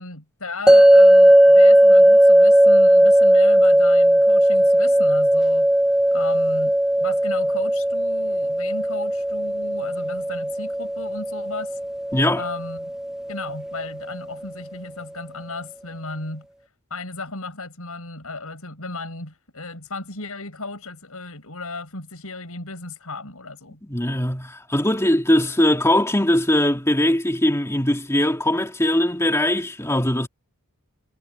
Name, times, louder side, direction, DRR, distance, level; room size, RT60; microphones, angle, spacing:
voice 1, 0.0-5.7 6.1-6.8 7.0-11.8 12.4-12.9 13.3-16.5 16.9-23.8, left 3 dB, 75° left, 6.9 m, -35 dB
sound 1, 0.7-13.8, right 1 dB, 5° right, 0.6 m, -16 dB
voice 2, 12.1-12.4 23.8-30.3, left 1 dB, 10° left, 2.3 m, -20 dB
head